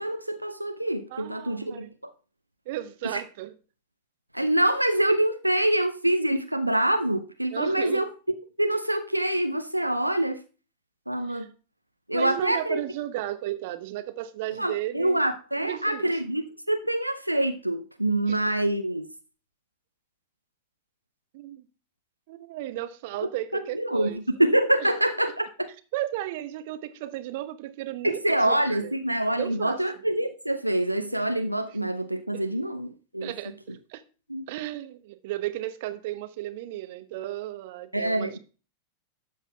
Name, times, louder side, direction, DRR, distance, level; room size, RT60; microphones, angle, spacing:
voice 1, 0.0-1.9 3.1-3.2 4.3-8.1 8.6-10.4 11.1-11.5 12.1-12.8 14.6-19.1 23.2-25.7 28.0-33.3 34.3-34.4 37.9-38.4, right 1 dB, 90° right, 0.5 m, -26 dB
voice 2, 1.1-1.9 2.7-3.5 7.5-8.0 11.3-11.5 12.1-15.2 15.6-16.2 18.3-18.4 21.3-21.6 22.3-24.2 24.8-24.9 25.9-28.9 29.3-29.8 32.3-32.4 33.2-34.0 34.5-38.4, right 14 dB, 50° right, 0.8 m, -34 dB
13.0 x 7.3 x 2.3 m
figure-of-eight pair, 90°, 0 cm